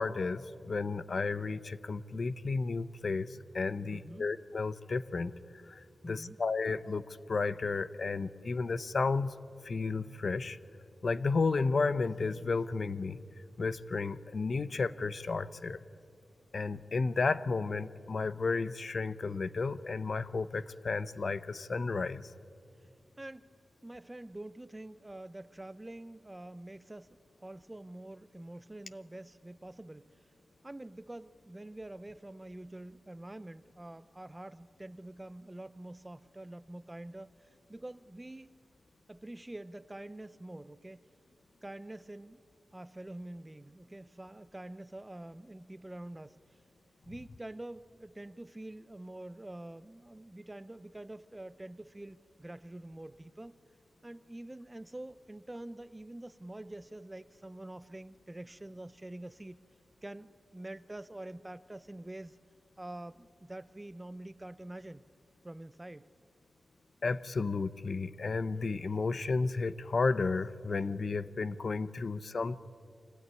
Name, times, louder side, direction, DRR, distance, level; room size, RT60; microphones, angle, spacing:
voice 1, 0.0-5.3 5.7-9.3 9.6-10.6 11.0-13.2 13.6-15.8 16.5-22.3 67.0-72.6, left 4 dB, 50° left, 15 dB, 0.6 m, -32 dB
voice 2, 3.9-4.3 6.0-6.4 22.8-22.9 23.2-23.5 23.8-30.3 30.6-38.5 39.1-41.1 41.6-42.4 42.7-46.4 47.1-53.6 54.0-59.6 60.0-62.4 62.8-65.0 65.4-66.1 72.0-72.1, right 1 dB, 15° right, 15 dB, 0.5 m, -46 dB
25.0 x 16.0 x 9.4 m, 2.4 s
wide cardioid pair, 140°, 0 cm